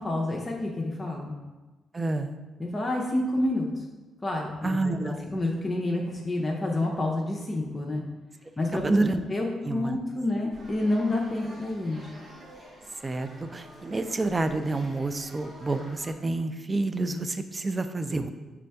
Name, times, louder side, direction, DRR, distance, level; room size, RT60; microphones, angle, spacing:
voice 1, 0.0-1.3 2.6-3.8 4.2-8.0 8.6-8.9 9.3-12.1, left 1 dB, 25° left, -1 dB, 0.6 m, -29 dB
voice 2, 1.9-2.4 4.6-5.2 8.7-9.2 9.6-10.0 13.0-18.3, right 2 dB, 25° right, 9 dB, 0.3 m, -28 dB
sound 1, 10.5-16.1, right 1 dB, 55° right, 1.4 m, -49 dB
5.1 x 3.4 x 2.2 m, 1.2 s
cardioid pair, 75°, 0 cm